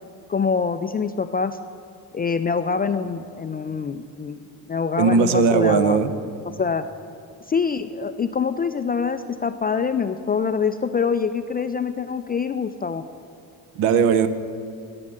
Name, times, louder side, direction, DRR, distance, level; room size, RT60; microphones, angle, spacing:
voice 1, 0.3-1.6 2.1-4.4 4.7-6.0 6.6-6.8 7.5-13.0, left 5 dB, 20° left, 10 dB, 0.3 m, -25 dB
voice 2, 5.0-6.1 13.8-14.3, right 6 dB, 70° right, 11 dB, 0.9 m, -18 dB
10.5 x 7.3 x 7.7 m, 2.3 s
hypercardioid pair, 50°, 49 cm